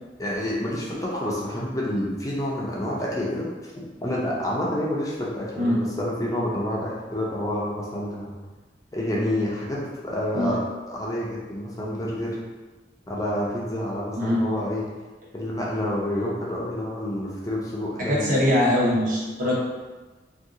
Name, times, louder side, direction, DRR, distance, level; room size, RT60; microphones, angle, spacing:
voice 1, 0.2-3.5 3.8-8.3 8.9-10.6 10.9-12.4 13.1-14.9 15.3-18.3, left 1 dB, 20° left, -5 dB, 0.4 m, -28 dB
voice 2, 18.0-19.5, left 1 dB, 50° right, -6 dB, 0.9 m, -22 dB
2.7 x 2.3 x 3.6 m, 1.2 s
head